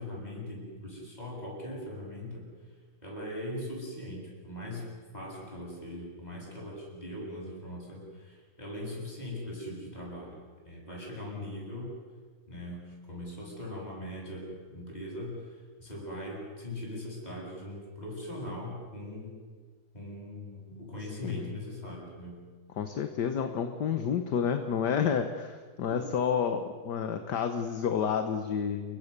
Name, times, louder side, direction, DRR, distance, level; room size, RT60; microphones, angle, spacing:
voice 1, 0.0-2.5 3.0-10.4 10.6-11.9 12.5-15.4 15.8-19.4 19.9-22.4, left 1 dB, 20° left, -2 dB, 7.7 m, -40 dB
voice 2, 21.2-21.5 22.8-29.0, left 7 dB, 55° left, 7 dB, 1.7 m, -30 dB
29.5 x 22.5 x 6.8 m, 1.5 s
omnidirectional pair, 2.3 m